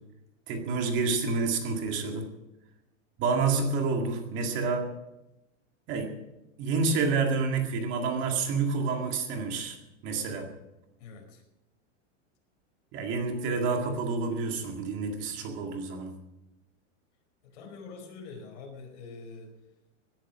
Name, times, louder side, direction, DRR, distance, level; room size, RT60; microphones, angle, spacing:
voice 1, 0.5-2.3 3.2-4.9 5.9-6.1 6.6-9.8 10.0-10.5 12.9-16.1, right 4 dB, 30° right, 3 dB, 2.1 m, -28 dB
voice 2, 11.0-11.4 17.4-19.5, left 4 dB, 65° left, 4 dB, 4.6 m, -45 dB
17.5 x 10.5 x 6.1 m, 0.94 s
supercardioid pair, 170°, 38 cm